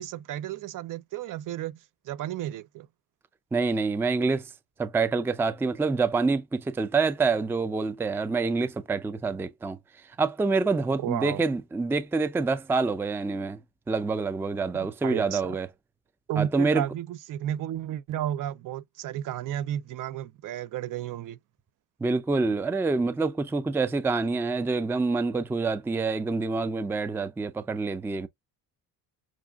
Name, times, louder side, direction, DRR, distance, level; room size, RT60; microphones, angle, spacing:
voice 1, 0.0-1.8 2.1-2.9 11.0-11.4 15.0-15.6 16.3-21.4, right 11 dB, 55° right, 0.5 m, -33 dB
voice 2, 3.5-4.5 4.8-9.8 10.2-13.6 13.9-15.7 16.4-16.8 22.0-28.3, right 4 dB, 5° right, 0.4 m, -26 dB
6.1 x 2.4 x 2.3 m
cardioid pair, 105°, 37 cm